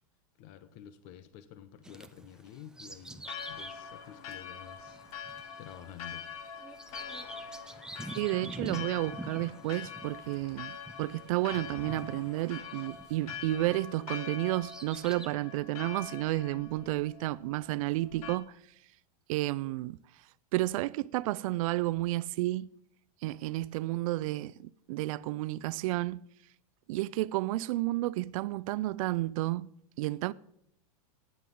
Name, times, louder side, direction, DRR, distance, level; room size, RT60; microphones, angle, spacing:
voice 1, 0.4-6.5, left 9 dB, 45° left, 0.9 m, -50 dB
Bird vocalization bird call bird song, 1.8-13.9 14.4-15.3, right 2 dB, 5° right, 0.5 m, -47 dB
Church bell, 3.2-18.4, left 7 dB, 70° left, 1.2 m, -44 dB
voice 2, 8.1-18.6 19.3-20.0 20.5-22.7 23.2-26.2 26.9-29.7 30.0-30.3, right 17 dB, 60° right, 0.4 m, -31 dB
16.0 x 9.5 x 3.8 m
supercardioid pair, 135°, 19 cm